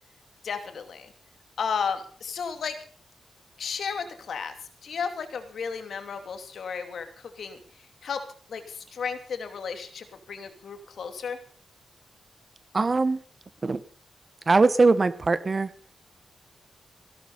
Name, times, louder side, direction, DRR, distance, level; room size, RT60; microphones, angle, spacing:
voice 1, 0.4-1.1 1.6-2.8 3.6-4.5 4.8-7.6 8.0-8.2 8.5-11.4, left 6 dB, 75° left, 8 dB, 2.7 m, -33 dB
voice 2, 12.7-13.2 13.6-13.8 14.5-15.7, right 3 dB, 40° right, 15 dB, 1.2 m, -21 dB
16.5 x 12.0 x 5.7 m, 0.43 s
cardioid pair, 80°, 0 cm